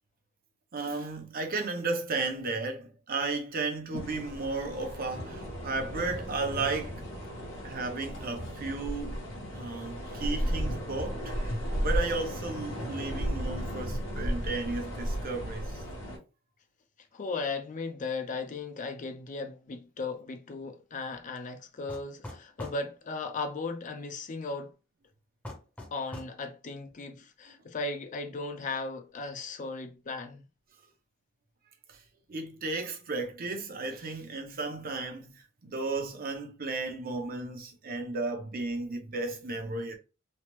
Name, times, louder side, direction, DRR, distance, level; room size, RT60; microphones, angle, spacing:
voice 1, 0.7-7.0 7.6-9.2 9.5-11.5 11.8-15.8 31.9-32.0 32.3-35.3 35.6-40.0, right 3 dB, 45° right, 0.7 m, -34 dB
sound 1, 3.9-16.2, equal, 75° left, 1.1 m, -34 dB
voice 2, 17.1-24.7 25.9-30.4, left 3 dB, 40° left, 0.4 m, -36 dB
sound 2, 21.9-22.8 25.4-26.4, left 1 dB, 5° left, 0.7 m, -42 dB
3.1 x 2.0 x 2.9 m
head